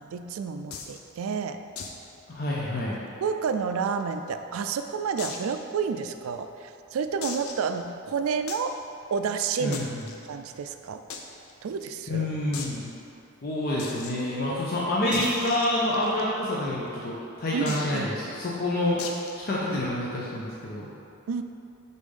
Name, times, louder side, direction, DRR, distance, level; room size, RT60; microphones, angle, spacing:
voice 1, 0.0-1.6 3.2-8.7 9.1-9.8 10.3-11.0 11.6-12.3 17.5-18.1 21.3-21.4, right 6 dB, 75° right, 8 dB, 0.3 m, -30 dB
sound 1, 0.7-1.0 1.8-2.0 2.3-2.4 2.8-2.9 3.5-4.3 5.2-5.5 6.1-6.2 7.2-7.7 8.5-8.7 9.7-10.2 11.1-11.2 11.5-11.6 11.8-11.9 12.5-12.8 13.8-14.1 15.1-16.2 17.7-18.0 19.0-19.4, left 5 dB, 85° left, 0.6 m, -37 dB
voice 2, 2.3-3.0 9.6-10.0 12.1-12.9 13.4-19.0 19.4-20.9, left 1 dB, 45° left, -6 dB, 0.7 m, -28 dB
5.0 x 4.1 x 5.3 m, 2.7 s
head